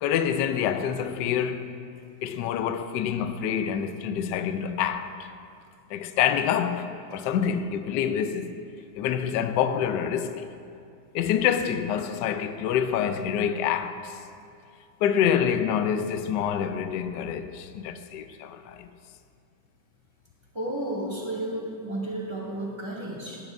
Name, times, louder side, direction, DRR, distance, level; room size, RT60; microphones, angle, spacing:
voice 1, 0.0-1.7 2.2-5.3 5.9-8.6 8.9-10.5 11.1-14.1 15.0-18.9, left 8 dB, 75° left, 1.0 m, -27 dB
voice 2, 20.5-23.4, right 1 dB, 15° right, 2.3 m, -32 dB
16.5 x 10.5 x 2.6 m
omnidirectional pair, 2.2 m